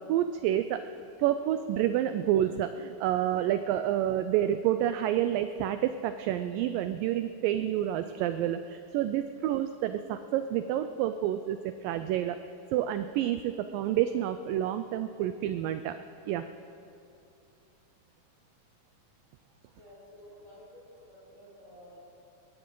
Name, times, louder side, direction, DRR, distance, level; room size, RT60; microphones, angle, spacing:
voice 1, 0.1-0.8 1.2-12.4 12.7-16.0 16.3-16.5, right 11 dB, 85° right, 10 dB, 2.0 m, -29 dB
voice 2, 19.8-22.0, left 1 dB, 20° right, -7 dB, 4.7 m, -52 dB
20.0 x 15.5 x 3.8 m, 2.6 s
omnidirectional pair, 4.5 m